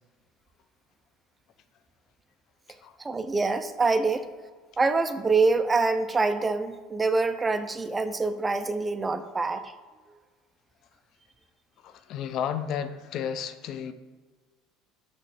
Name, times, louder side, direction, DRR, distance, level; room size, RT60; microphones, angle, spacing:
voice 1, 3.0-4.3 4.8-9.7, right 3 dB, 15° right, 9 dB, 0.4 m, -25 dB
voice 2, 11.8-13.9, left 8 dB, 50° left, 11 dB, 0.4 m, -32 dB
6.5 x 3.1 x 5.4 m, 1.4 s
cardioid pair, 135°, 0 cm